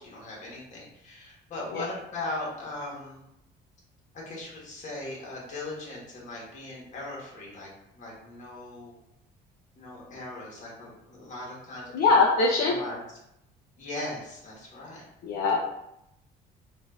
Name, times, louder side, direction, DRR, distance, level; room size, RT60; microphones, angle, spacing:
voice 1, 0.0-3.2 4.3-7.7 7.9-8.9 9.7-12.1 12.7-13.0 13.8-15.1, left 2 dB, 45° left, -4 dB, 1.4 m, -39 dB
voice 2, 11.9-12.8 15.2-15.6, left 3 dB, 65° left, -1 dB, 0.5 m, -22 dB
3.8 x 2.5 x 2.4 m, 0.83 s
cardioid pair, 110°, 17 cm